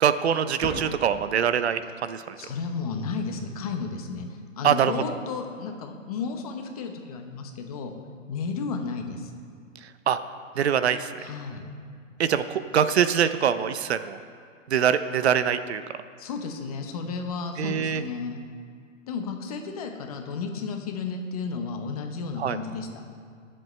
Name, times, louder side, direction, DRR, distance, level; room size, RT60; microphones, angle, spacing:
voice 1, 0.0-2.4 4.6-4.9 10.1-10.2 10.6-11.1 12.2-14.2 14.7-15.8 17.6-18.0 22.4-22.6, right 8 dB, 55° right, 12 dB, 0.6 m, -23 dB
Fireworks, 0.6-3.3 4.0-4.1 4.8-5.3 7.2-7.3, equal, ahead, 0.8 m, -41 dB
voice 2, 2.4-4.3 4.6-7.9 8.3-9.3 11.2-11.7 16.2-18.4 19.1-22.9, left 5 dB, 30° left, 4 dB, 0.9 m, -33 dB
20.5 x 7.7 x 3.2 m, 2.2 s
hypercardioid pair, 165°, 39 cm